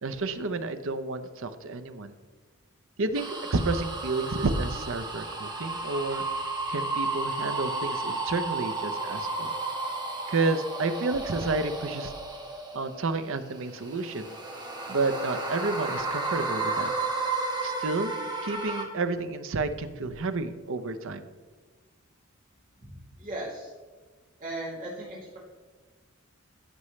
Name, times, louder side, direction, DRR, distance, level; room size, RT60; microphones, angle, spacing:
voice 1, 0.0-2.1 3.0-6.2 6.7-9.6 10.3-12.1 12.7-14.3 14.9-16.9 17.6-18.1 18.4-21.2, right 3 dB, 65° right, 10 dB, 0.7 m, -30 dB
sound 1, 3.1-13.1 13.6-18.9, right 3 dB, 20° right, 1.4 m, -33 dB
voice 2, 22.8-23.7 24.4-25.4, right 1 dB, 40° right, -6 dB, 3.1 m, -37 dB
15.5 x 6.2 x 3.2 m, 1.4 s
head